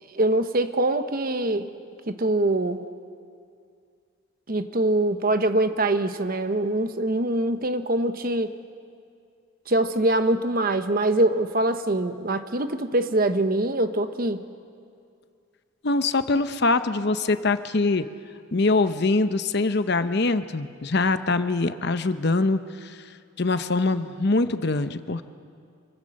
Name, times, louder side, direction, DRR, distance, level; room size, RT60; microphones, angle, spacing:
voice 1, 0.1-1.7 2.1-2.9 4.5-8.5 9.7-14.4, right 1 dB, 45° right, 9 dB, 1.0 m, -24 dB
voice 2, 15.8-18.1 18.5-23.0 23.4-25.2, left 3 dB, 50° left, 10 dB, 0.8 m, -23 dB
26.0 x 24.5 x 6.5 m, 2.3 s
head